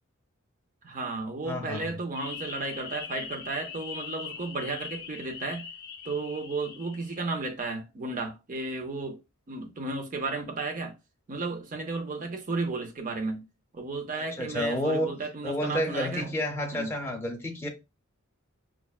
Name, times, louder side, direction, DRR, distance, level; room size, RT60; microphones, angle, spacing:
voice 1, 0.8-5.7 6.0-9.2 9.5-10.9 11.3-13.5 13.7-16.3 16.7-16.9, right 3 dB, 40° right, 0.6 m, -33 dB
voice 2, 1.5-1.9 14.2-15.2 15.4-17.7, left 1 dB, 10° left, 0.7 m, -30 dB
sound 1, 2.1-7.4, left 6 dB, 55° left, 0.6 m, -42 dB
5.9 x 2.1 x 2.3 m
head